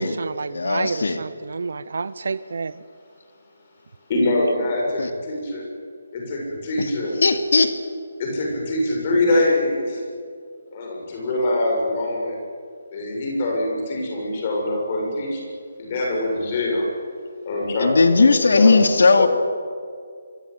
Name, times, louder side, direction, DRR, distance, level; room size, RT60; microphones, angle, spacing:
voice 1, 0.0-2.8, right 4 dB, 55° right, 0.7 m, -29 dB
voice 2, 0.5-1.2 5.0-5.1 6.8-6.9 7.2-7.7 17.8-19.3, left 3 dB, 65° left, 2.7 m, -17 dB
voice 3, 4.1-5.7 6.1-7.2 8.2-10.0 10.7-12.4 12.9-15.5 15.8-16.9 17.4-18.8 19.2-19.3, left 2 dB, 25° left, 6.8 m, -24 dB
24.5 x 24.5 x 9.8 m
hypercardioid pair, 175°, 0 cm